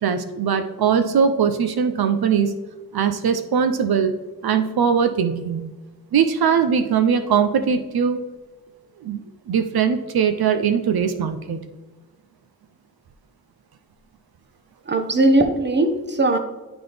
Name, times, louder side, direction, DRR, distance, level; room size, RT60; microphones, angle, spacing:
voice 1, 0.0-2.5 2.9-4.1 4.4-5.7 6.1-8.2 9.0-11.7, right 7 dB, 80° right, 9 dB, 0.6 m, -21 dB
voice 2, 14.9-16.4, right 2 dB, 30° right, 7 dB, 0.9 m, -19 dB
11.0 x 3.9 x 3.3 m, 1.2 s
wide cardioid pair, 70°, 37 cm